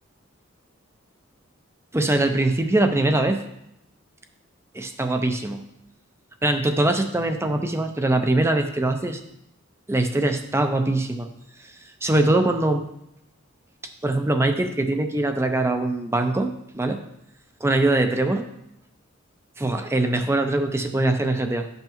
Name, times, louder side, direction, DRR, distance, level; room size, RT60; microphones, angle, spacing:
voice 1, 1.9-3.4 4.7-5.6 6.4-9.2 9.9-11.3 12.0-12.8 14.0-17.0 17.6-18.5 19.6-21.7, right 2 dB, 15° right, 6 dB, 0.5 m, -22 dB
10.5 x 5.6 x 3.0 m, 0.80 s
head